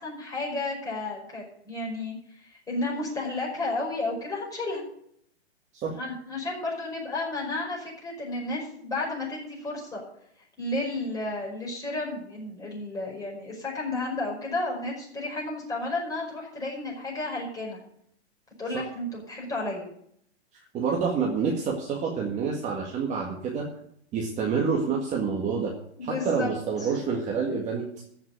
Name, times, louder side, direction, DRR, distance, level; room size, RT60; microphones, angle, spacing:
voice 1, 0.0-2.1 2.4-4.8 5.9-10.0 10.6-17.8 18.6-19.9 26.0-26.5 26.8-26.9, left 2 dB, 10° left, -3 dB, 5.5 m, -32 dB
voice 2, 20.7-23.7 24.1-25.7 26.0-27.9, right 5 dB, 20° right, -1 dB, 1.8 m, -28 dB
15.0 x 6.1 x 8.1 m, 0.69 s
hypercardioid pair, 130°, 34 cm